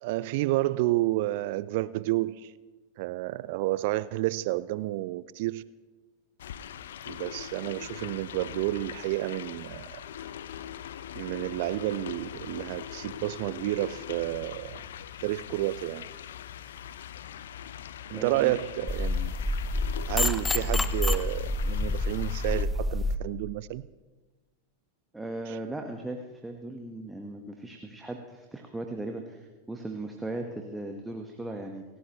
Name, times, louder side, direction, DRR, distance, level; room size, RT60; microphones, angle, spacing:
voice 1, 0.0-2.5 3.0-5.6 7.1-10.0 11.1-14.8 15.2-16.1 18.1-19.3 20.1-23.8 25.5-25.6, right 17 dB, 50° right, 18 dB, 0.4 m, -30 dB
sound 1, 6.4-22.7, left 9 dB, 60° left, 0.6 m, -41 dB
voice 2, 18.1-18.5 25.1-31.8, right 2 dB, 5° right, 3 dB, 1.4 m, -38 dB
sound 2, 18.9-23.2, left 2 dB, 10° left, 0.7 m, -28 dB
30.0 x 15.5 x 3.1 m, 1.2 s
figure-of-eight pair, 90°, 0 cm